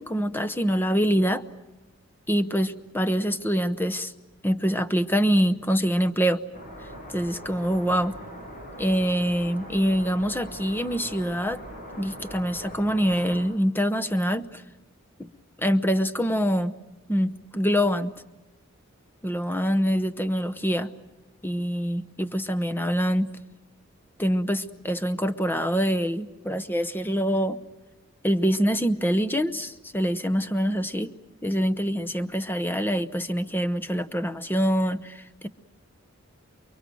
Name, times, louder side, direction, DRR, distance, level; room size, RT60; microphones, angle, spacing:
voice 1, 0.0-1.4 2.3-4.1 4.4-6.4 7.1-8.2 8.8-11.6 12.0-14.6 15.2-15.3 15.6-16.8 17.1-18.1 19.2-20.9 21.4-23.4 24.2-27.6 28.2-31.1 31.4-35.5, equal, 10° left, 11 dB, 0.8 m, -25 dB
sound 1, 6.5-13.4, equal, 40° left, 6.1 m, -41 dB
29.0 x 23.0 x 7.8 m, 1.1 s
head